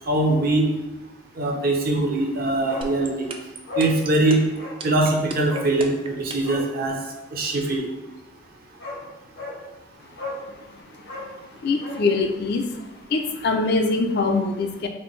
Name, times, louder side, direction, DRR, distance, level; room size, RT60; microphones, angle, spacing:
voice 1, 0.1-0.7 1.4-3.3 3.8-4.4 4.8-7.0 7.3-7.8, right 2 dB, 50° right, 1 dB, 0.7 m, -22 dB
Bark, 2.7-2.9 3.2-3.3 3.7-3.9 4.6-4.8 5.5-5.7 6.4-6.7 8.3-8.4 8.8-9.0 9.4-9.6 10.2-10.5 11.0-12.0 12.3-12.4, left 2 dB, 85° left, 1.2 m, -34 dB
sound 1, 2.8-6.6, right 4 dB, 30° right, 0.3 m, -34 dB
voice 2, 10.5-11.2 11.6-12.8 13.1-14.9, left 3 dB, 55° left, 5 dB, 0.4 m, -24 dB
4.2 x 2.5 x 3.1 m, 1.0 s
head